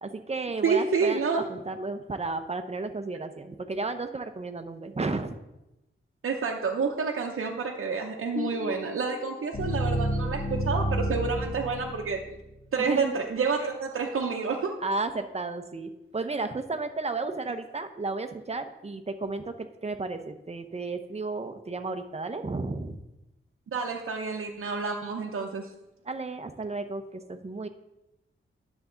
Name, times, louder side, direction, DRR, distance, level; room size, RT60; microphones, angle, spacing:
voice 1, 0.0-1.2 1.5-5.4 12.8-13.2 14.8-23.0 26.0-27.7, right 3 dB, 30° right, 8 dB, 0.7 m, -33 dB
voice 2, 0.6-1.5 6.2-12.2 12.7-14.8 23.7-25.7, right 5 dB, 80° right, 0 dB, 0.8 m, -29 dB
sound 1, 8.4-12.4, equal, 35° left, 2.1 m, -30 dB
10.5 x 7.1 x 3.8 m, 0.93 s
wide cardioid pair, 120°, 21 cm